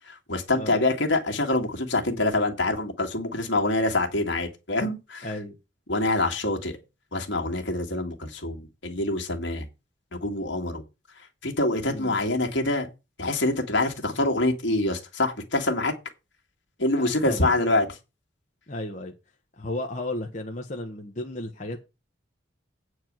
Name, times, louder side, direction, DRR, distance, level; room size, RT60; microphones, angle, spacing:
voice 1, 0.1-5.3 5.9-6.8 7.1-9.7 10.1-10.8 11.4-12.9 13.2-15.9 16.8-17.9, left 2 dB, 70° left, 2.2 m, -25 dB
voice 2, 5.2-5.6 11.9-12.2 16.9-17.5 18.7-19.1 19.6-21.8, left 1 dB, 35° left, 1.2 m, -34 dB
9.0 x 4.8 x 7.7 m
head